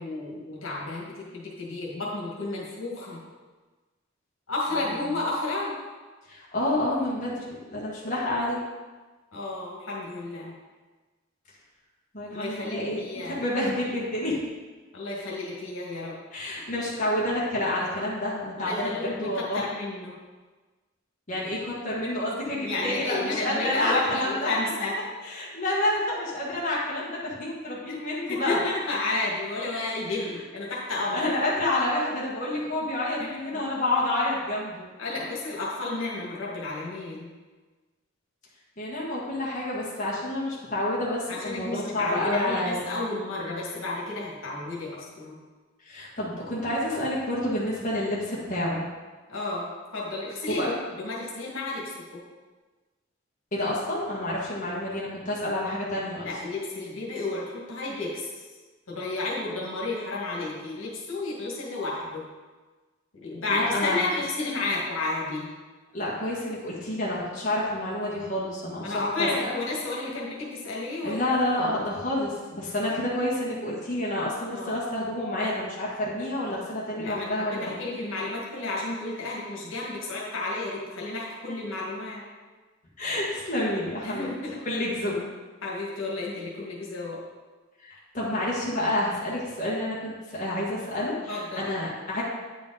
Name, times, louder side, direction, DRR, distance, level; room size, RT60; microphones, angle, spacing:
voice 1, 0.0-3.2 4.5-5.8 9.3-10.5 12.3-13.4 14.9-16.2 18.6-20.1 22.6-24.9 27.9-28.0 28.3-31.2 33.2-33.4 35.0-37.3 41.3-45.4 49.3-50.7 51.0-51.9 56.2-58.3 58.9-62.3 63.1-65.5 68.8-71.2 74.5-74.7 77.0-82.2 84.0-84.6 85.6-87.2 91.3-91.7, left 2 dB, 75° left, -4 dB, 1.9 m, -31 dB
voice 2, 6.3-8.6 12.1-14.4 16.3-19.6 21.3-24.5 25.2-28.6 31.1-34.9 38.8-42.8 45.8-48.8 50.5-50.7 53.5-56.3 63.5-64.0 65.9-69.3 71.0-77.8 83.0-84.3 84.6-85.2 87.8-92.2, left 1 dB, 40° left, -6 dB, 1.7 m, -29 dB
9.3 x 5.1 x 4.0 m, 1.3 s
head